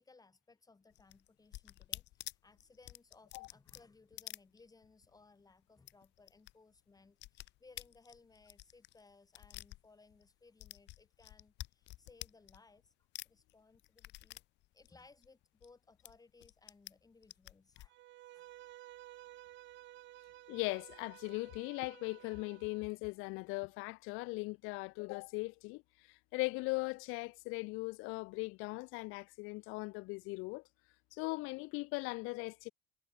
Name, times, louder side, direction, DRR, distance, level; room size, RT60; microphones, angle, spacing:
voice 1, 0.0-12.9 13.2-14.4 14.7-18.0 18.3-18.5, left 3 dB, 20° left, 2.9 m, -63 dB
sound 1, 0.9-5.1 5.4-5.5 5.8-6.5 6.8-10.3 10.6-12.9 13.2-15.7 16.1-16.9 17.2-17.9, left 17 dB, 60° left, 0.5 m, -50 dB
Bowed string instrument, 17.9-22.9, right 15 dB, 65° right, 3.4 m, -55 dB
voice 2, 20.5-25.8 26.1-30.6 31.1-32.7, left 26 dB, 90° left, 0.8 m, -39 dB
cardioid pair, 120°, 20 cm